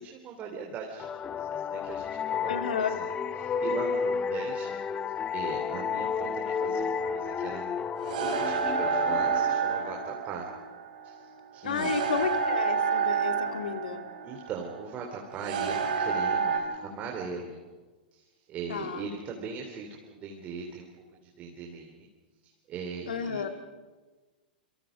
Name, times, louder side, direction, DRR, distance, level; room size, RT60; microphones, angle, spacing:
voice 1, 0.0-3.1 3.4-4.8 5.3-7.8 8.1-10.4 11.0-11.9 14.2-17.6 18.1-20.9 21.2-22.1 22.7-23.5, right 5 dB, 30° right, 1 dB, 3.4 m, -40 dB
sound 1, 1.0-10.4, left 6 dB, 20° left, 0.9 m, -32 dB
voice 2, 2.5-3.0 11.6-14.1 18.7-19.0 23.1-23.5, left 6 dB, 70° left, 6 dB, 2.4 m, -31 dB
sound 2, 7.0-16.6, right 6 dB, 60° right, 6.8 m, -30 dB
27.5 x 26.0 x 5.2 m, 1.3 s
figure-of-eight pair, 100°, 5 cm